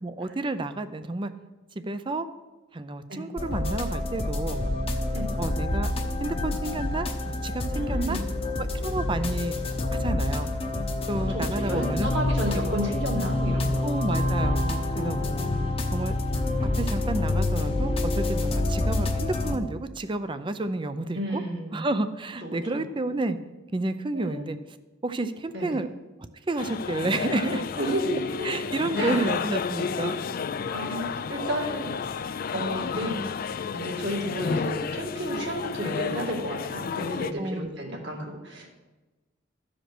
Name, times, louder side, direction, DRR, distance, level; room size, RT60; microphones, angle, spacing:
voice 1, 0.0-1.3 1.8-2.3 2.7-4.6 5.4-5.9 6.2-8.2 8.6-9.6 9.9-10.5 11.1-12.1 13.8-14.6 14.9-15.5 15.9-16.1 16.8-21.4 21.7-23.4 23.7-24.8 25.0-25.9 26.5-27.6 28.4-30.2 30.9-31.0 37.4-37.7, right 2 dB, 25° right, 11 dB, 0.5 m, -30 dB
sound 1, 3.4-19.6, left 2 dB, 30° left, 0.9 m, -27 dB
voice 2, 7.7-8.2 11.3-13.9 14.2-14.3 15.4-15.5 21.1-21.9 22.4-22.8 24.1-24.4 25.5-25.8 27.8-28.6 29.0-29.3 30.7-32.0 32.5-33.4 33.7-38.7, equal, 60° right, -1 dB, 2.4 m, -32 dB
sound 2, 26.6-37.3, left 5 dB, 50° left, 0.4 m, -31 dB
13.5 x 5.1 x 6.0 m, 1.2 s
head